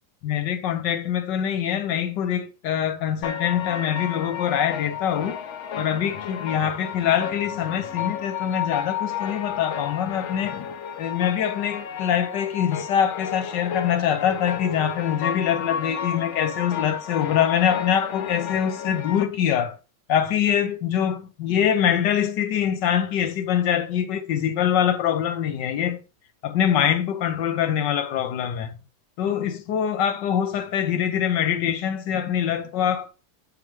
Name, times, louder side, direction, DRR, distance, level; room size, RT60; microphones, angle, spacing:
voice 1, 0.2-5.4 5.8-10.7 11.0-19.8 20.1-26.0 26.4-28.7 29.2-33.1, left 9 dB, 75° left, 1.5 m, -24 dB
sound 1, 3.2-19.2, left 8 dB, 60° left, 0.8 m, -32 dB
7.4 x 6.5 x 3.0 m
omnidirectional pair, 1.9 m